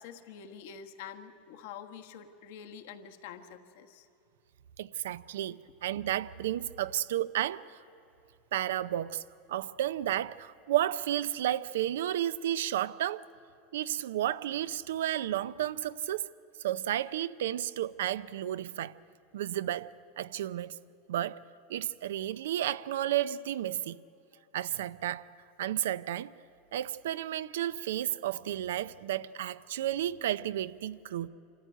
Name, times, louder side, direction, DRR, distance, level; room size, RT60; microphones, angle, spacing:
voice 1, 0.0-4.1, left 7 dB, 75° left, 1.4 m, -47 dB
voice 2, 4.8-7.8 8.5-9.2 9.5-13.3 13.7-16.3 16.6-19.0 19.3-20.8 21.1-21.4 21.7-24.0 24.5-25.3 25.6-26.3 26.7-31.3, right 12 dB, 90° right, 0.5 m, -32 dB
26.0 x 14.0 x 9.1 m
supercardioid pair, 125°, 0 cm